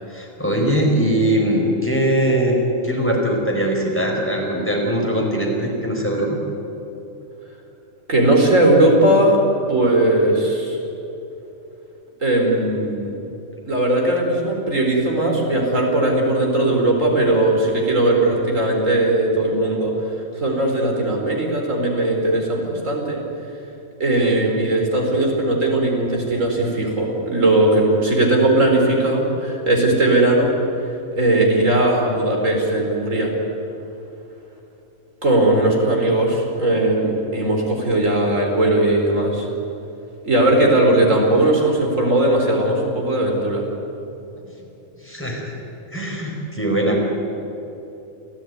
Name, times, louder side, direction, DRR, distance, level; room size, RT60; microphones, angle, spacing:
voice 1, 0.1-2.6 2.8-6.4 45.0-45.5 45.9-47.0, right 1 dB, 10° left, -1 dB, 4.8 m, -21 dB
voice 2, 8.1-9.4 9.7-10.8 12.2-13.1 13.7-19.9 20.3-23.2 24.0-30.6 31.1-33.3 35.2-39.5 40.2-43.7, right 1 dB, 65° right, 0 dB, 4.4 m, -18 dB
29.0 x 16.0 x 9.4 m, 3.0 s
omnidirectional pair, 1.4 m